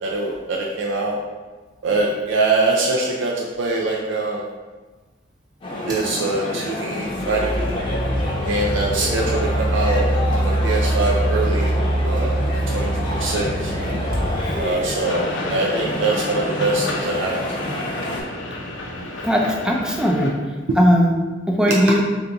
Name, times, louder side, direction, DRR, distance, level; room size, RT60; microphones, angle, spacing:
voice 1, 0.0-1.2 1.8-4.4 5.9-7.6 8.4-11.8 12.0-13.7 14.6-17.3 20.7-20.8 21.7-21.8, right 2 dB, 70° right, -2 dB, 0.4 m, -23 dB
sound 1, 5.6-18.2, left 1 dB, 30° left, 0.7 m, -28 dB
sound 2, 5.9-6.1 7.0-15.0, right 1 dB, 20° right, 0.8 m, -23 dB
sound 3, 15.0-20.3, left 1 dB, 80° left, 0.6 m, -31 dB
voice 2, 19.2-20.3 20.8-21.1 21.5-22.0, equal, 5° right, -1 dB, 0.4 m, -17 dB
3.4 x 2.7 x 3.9 m, 1.3 s
head